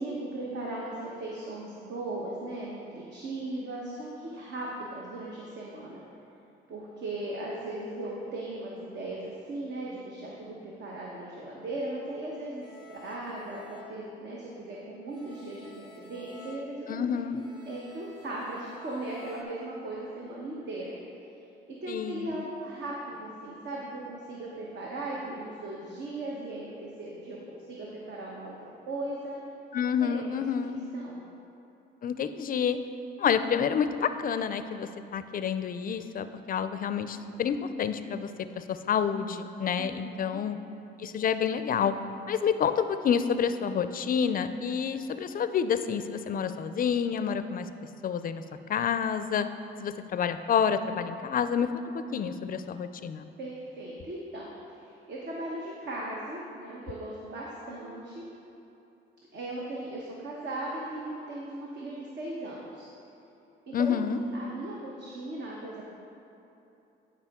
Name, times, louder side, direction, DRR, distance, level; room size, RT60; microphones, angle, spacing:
voice 1, 0.0-6.0 6.7-17.1 17.7-20.9 21.8-29.4 30.0-30.4 30.9-31.2 39.8-40.4 53.4-58.2 59.3-62.9 63.7-65.8, right 2 dB, 60° right, -4 dB, 1.1 m, -38 dB
sound 1, 12.6-14.7 15.1-19.4, left 3 dB, 20° right, 1.1 m, -51 dB
voice 2, 16.9-17.4 21.9-22.4 29.7-30.8 32.0-32.8 33.2-40.6 41.0-41.9 42.3-47.7 48.0-48.4 48.7-49.5 49.8-51.8 52.1-53.3 63.7-64.2, left 7 dB, 45° left, 11 dB, 0.4 m, -28 dB
10.5 x 5.0 x 3.6 m, 2.9 s
cardioid pair, 90°, 20 cm